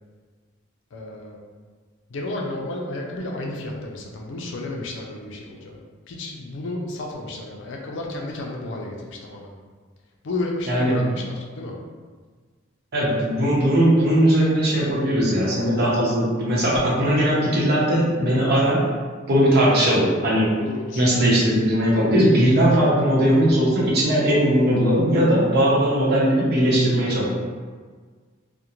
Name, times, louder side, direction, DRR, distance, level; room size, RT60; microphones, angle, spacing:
voice 1, 0.9-1.4 2.1-5.8 6.1-9.5 10.2-11.7 20.6-21.1, left 2 dB, 70° left, 0 dB, 0.4 m, -32 dB
voice 2, 10.7-11.0 12.9-18.8 19.3-20.5 21.0-27.3, equal, 55° right, -6 dB, 0.8 m, -19 dB
2.4 x 2.1 x 2.9 m, 1.5 s
head